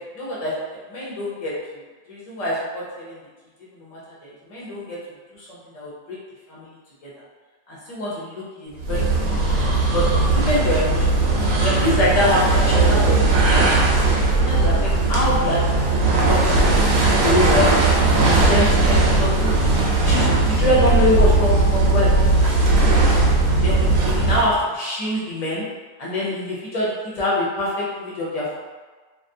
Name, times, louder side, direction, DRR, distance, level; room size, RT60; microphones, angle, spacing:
voice 1, 0.2-1.5 2.1-3.2 3.8-5.0 5.3-6.2 6.5-6.7 7.0-7.1 7.7-9.1 9.9-10.1 10.3-11.0 11.6-14.0 14.3-15.8 16.3-17.7 18.1-19.5 20.1-23.1 23.6-25.6 26.0-28.6, left 1 dB, 40° left, -6 dB, 0.6 m, -25 dB
sound 1, 8.8-24.6, right 2 dB, 80° right, 1.0 m, -18 dB
2.4 x 2.3 x 2.6 m, 1.4 s
omnidirectional pair, 1.4 m